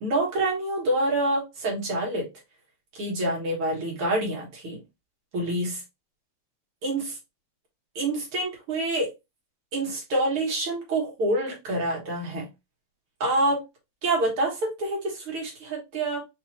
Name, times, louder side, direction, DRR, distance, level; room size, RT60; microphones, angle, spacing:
voice 1, 0.0-2.3 2.9-4.8 5.3-5.8 6.8-7.2 8.0-9.1 9.7-12.5 13.2-13.6 14.0-16.2, right 1 dB, 85° right, 2.6 m, -27 dB
5.4 x 2.7 x 3.0 m
omnidirectional pair, 2.4 m